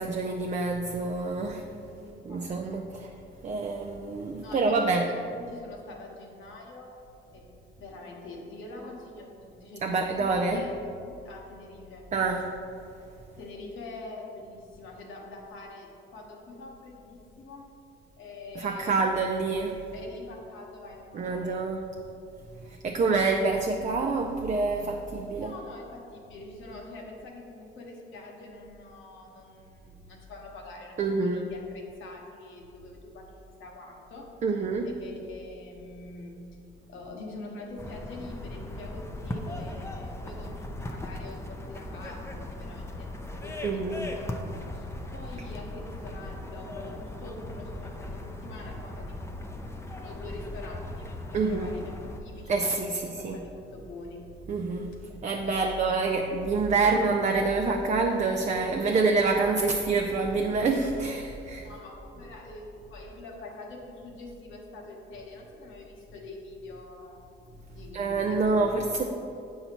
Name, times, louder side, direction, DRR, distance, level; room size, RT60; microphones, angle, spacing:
voice 1, 0.0-1.6 2.2-3.1 3.4-5.1 9.8-10.6 12.1-12.6 18.6-19.8 21.1-21.8 22.7-25.5 31.0-31.5 34.4-34.9 43.6-44.1 51.3-51.7 52.5-53.4 54.5-61.7 67.9-69.0, right 3 dB, 35° right, 3 dB, 0.4 m, -27 dB
voice 2, 1.9-2.8 4.4-6.9 7.3-7.5 7.8-12.1 13.3-17.7 18.2-19.0 19.9-21.6 22.6-22.8 25.3-34.3 34.8-36.4 36.9-43.1 43.4-51.1 51.3-54.2 55.4-56.0 56.5-56.9 58.8-59.7 61.6-67.2 67.7-69.0, left 2 dB, 75° left, -1 dB, 1.1 m, -45 dB
sound 1, 37.8-52.2, left 1 dB, 15° left, 0.6 m, -38 dB
7.9 x 5.5 x 3.0 m, 2.7 s
cardioid pair, 90°, 20 cm